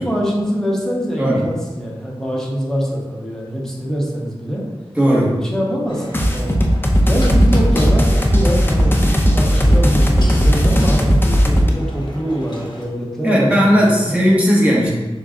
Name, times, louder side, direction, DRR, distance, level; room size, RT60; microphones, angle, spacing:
voice 1, 0.0-4.6 5.2-6.0 6.3-6.6 7.0-14.2, equal, 5° left, -3 dB, 1.1 m, -24 dB
voice 2, 5.0-5.3 13.2-14.9, equal, 15° right, -6 dB, 1.3 m, -15 dB
sound 1, 5.9-12.8, equal, 45° left, 1.0 m, -32 dB
sound 2, 6.1-11.7, equal, 20° left, 0.5 m, -15 dB
6.6 x 2.3 x 2.5 m, 1.3 s
wide cardioid pair, 45°, 10 cm